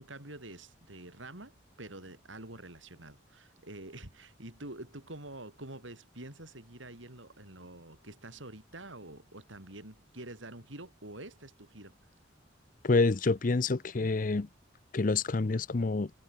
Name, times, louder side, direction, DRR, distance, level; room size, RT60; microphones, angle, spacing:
voice 1, 0.0-12.0, right 2 dB, 85° right, 6.1 m, -47 dB
voice 2, 12.8-14.5 14.9-16.1, left 3 dB, 45° left, 0.6 m, -27 dB
head